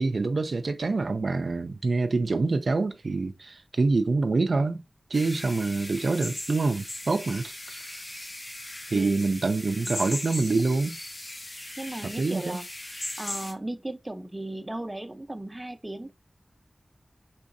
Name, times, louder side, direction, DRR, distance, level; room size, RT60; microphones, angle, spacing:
voice 1, 0.0-4.8 5.1-7.5 8.9-11.0 12.0-12.6, right 3 dB, 80° right, 0.3 m, -26 dB
sound 1, 5.1-13.5, left 1 dB, 50° left, 1.0 m, -38 dB
voice 2, 8.9-9.3 11.8-12.7 13.2-16.1, right 1 dB, 25° right, 0.5 m, -36 dB
3.8 x 2.6 x 2.5 m
cardioid pair, 45°, 0 cm